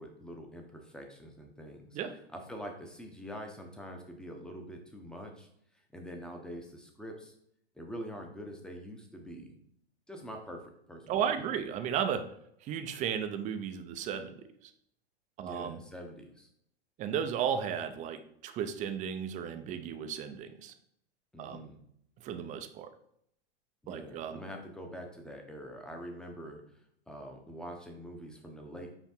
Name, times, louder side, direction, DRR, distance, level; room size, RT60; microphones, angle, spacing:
voice 1, 0.0-2.0 2.3-5.5 5.9-7.3 7.8-9.6 10.1-11.5 15.4-16.5 21.3-21.8 23.8-26.6 27.1-28.9, equal, ahead, 3 dB, 0.8 m, -45 dB
voice 2, 11.1-12.2 12.7-14.3 15.4-15.8 17.0-20.7 21.4-21.6 22.2-22.9 23.9-24.4, right 8 dB, 25° right, 8 dB, 0.6 m, -34 dB
6.0 x 4.4 x 4.3 m, 0.72 s
hypercardioid pair, 140°, 32 cm